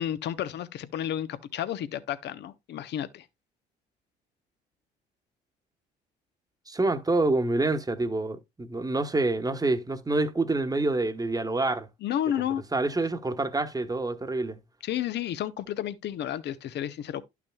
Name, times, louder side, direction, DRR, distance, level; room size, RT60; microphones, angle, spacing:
voice 1, 0.0-3.3 12.0-12.6 14.8-17.2, left 10 dB, 60° left, 0.7 m, -31 dB
voice 2, 6.7-11.9 12.7-14.6, right 2 dB, 20° right, 1.1 m, -27 dB
11.5 x 5.9 x 2.2 m
hypercardioid pair, 55°, 20 cm